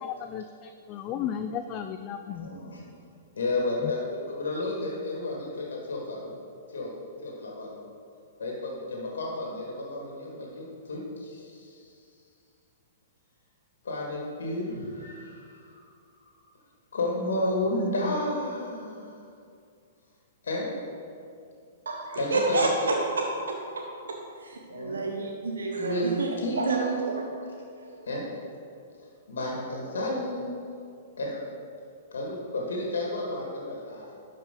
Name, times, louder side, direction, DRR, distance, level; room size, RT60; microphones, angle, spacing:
voice 1, 0.0-2.5, left 8 dB, 35° left, 8 dB, 0.3 m, -34 dB
voice 2, 2.3-3.1 3.4-6.3 6.7-6.9 7.2-7.8 8.4-11.8 13.8-15.8 16.9-19.2 20.4-20.7 22.2-23.0 24.7-25.1 25.7-27.3 28.1-28.2 29.3-30.6 31.2-31.4 32.1-34.1, left 1 dB, 75° left, -2 dB, 1.7 m, -32 dB
voice 3, 21.9-24.2 24.4-26.3 26.6-27.1 27.8-28.3, right 3 dB, 80° right, 0 dB, 0.8 m, -30 dB
11.0 x 5.0 x 3.8 m, 2.4 s
hypercardioid pair, 115°, 0 cm